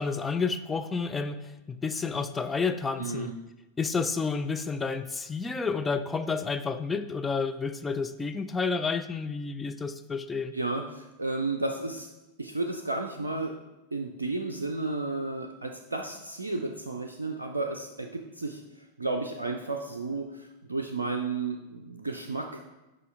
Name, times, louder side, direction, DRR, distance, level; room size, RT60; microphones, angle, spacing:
voice 1, 0.0-1.4 1.7-3.3 3.8-10.5, left 4 dB, 15° left, 9 dB, 0.4 m, -30 dB
voice 2, 3.0-3.3 10.5-12.1 12.4-13.5 13.9-22.6, right 3 dB, 80° right, 4 dB, 0.4 m, -33 dB
6.7 x 5.0 x 3.6 m, 1.1 s
figure-of-eight pair, 90°, 0 cm